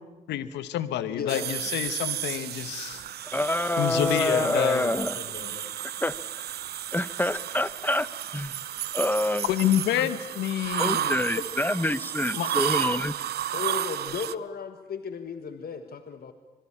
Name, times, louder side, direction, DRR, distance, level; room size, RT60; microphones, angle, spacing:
voice 1, 0.3-3.0 3.8-4.9 9.5-11.1 12.3-12.5, left 11 dB, 80° left, 13 dB, 1.3 m, -28 dB
voice 2, 1.1-1.6 1.9-2.0 3.9-5.8 11.4-11.5 13.5-16.3, left 6 dB, 60° left, 8 dB, 1.5 m, -35 dB
sound 1, 1.3-14.3, right 11 dB, 70° right, 0.8 m, -32 dB
voice 3, 3.3-5.2 6.0-6.5 6.9-8.1 8.3-8.6 8.9-9.4 10.0-10.1 10.8-13.1, left 1 dB, 10° left, 15 dB, 1.3 m, -27 dB
25.5 x 21.5 x 8.8 m, 1.2 s
hypercardioid pair, 45°, 18 cm